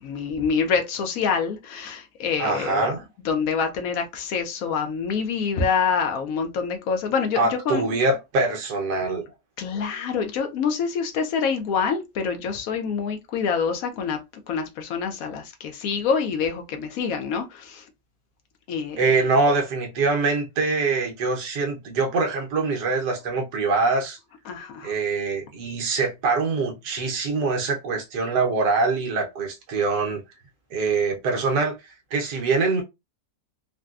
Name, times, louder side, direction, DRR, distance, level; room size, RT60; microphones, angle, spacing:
voice 1, 0.0-2.9 3.2-8.0 9.6-17.8 18.7-19.0 24.5-24.9, left 6 dB, 65° left, 0.9 m, -26 dB
voice 2, 2.4-3.0 7.4-9.2 19.0-24.2 24.8-30.2 30.7-32.8, right 3 dB, 70° right, 1.4 m, -24 dB
3.9 x 2.2 x 2.3 m
omnidirectional pair, 1.9 m